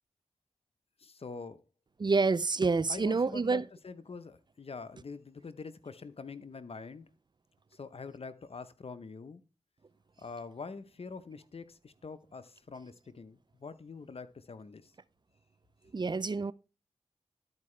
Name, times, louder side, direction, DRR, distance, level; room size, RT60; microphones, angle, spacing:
voice 1, 1.0-1.6 2.9-7.1 7.7-9.4 10.2-14.9, left 4 dB, 60° left, 0.8 m, -45 dB
voice 2, 2.0-3.6 15.9-16.5, right 4 dB, 40° right, 0.4 m, -28 dB
12.0 x 4.7 x 3.2 m
cardioid pair, 40°, 11 cm